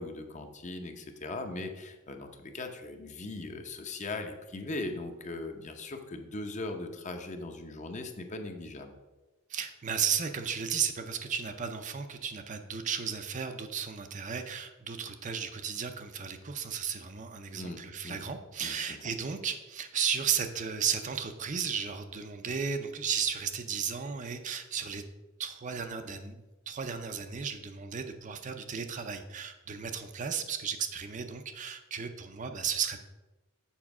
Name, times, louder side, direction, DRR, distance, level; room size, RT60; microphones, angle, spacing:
voice 1, 0.0-8.9 17.5-17.8 18.0-18.2 18.6-18.8, left 2 dB, 35° left, 5 dB, 0.8 m, -39 dB
voice 2, 9.5-25.0 25.4-33.0, right 7 dB, 35° right, 7 dB, 0.5 m, -34 dB
7.3 x 4.5 x 6.0 m, 1.1 s
head